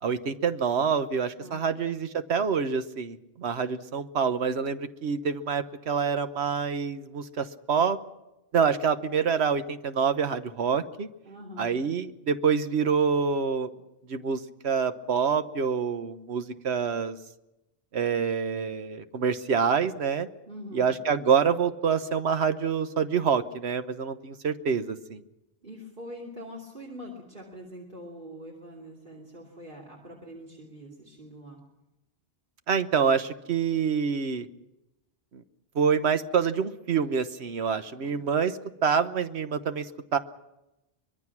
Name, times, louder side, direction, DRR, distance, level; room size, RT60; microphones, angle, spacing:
voice 1, 0.0-8.0 8.5-11.1 11.6-13.7 14.1-17.2 17.9-20.3 20.7-25.2 32.7-34.5 35.3-35.4 35.7-40.2, right 6 dB, 75° right, 10 dB, 1.3 m, -26 dB
voice 2, 1.4-1.9 11.2-11.8 20.5-20.9 25.6-31.6 38.0-38.2, equal, 50° right, -1 dB, 3.1 m, -44 dB
24.0 x 21.5 x 6.0 m, 0.94 s
omnidirectional pair, 1.1 m